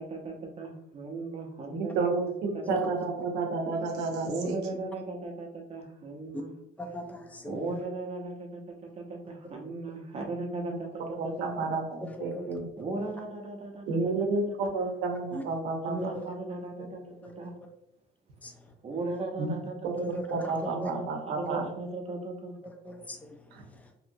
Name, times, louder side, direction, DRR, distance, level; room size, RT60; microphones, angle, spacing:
voice 1, 0.0-3.0 4.2-6.5 7.4-11.5 12.8-14.3 15.8-17.5 18.8-20.4 20.6-21.0 21.3-22.6, right 2 dB, 35° right, 2 dB, 0.7 m, -37 dB
voice 2, 1.7-4.6 10.7-12.7 13.9-16.1 19.4-19.6 19.8-21.7 23.5-23.6, right 3 dB, 85° right, 3 dB, 0.7 m, -31 dB
voice 3, 6.8-7.7 12.2-12.5 13.0-13.1 15.3-15.4 17.2-17.3 18.4-18.5 20.0-20.9 22.6-23.3 23.7-23.9, equal, 10° left, 5 dB, 0.4 m, -39 dB
2.8 x 2.6 x 2.6 m, 0.78 s
cardioid pair, 110°, 17 cm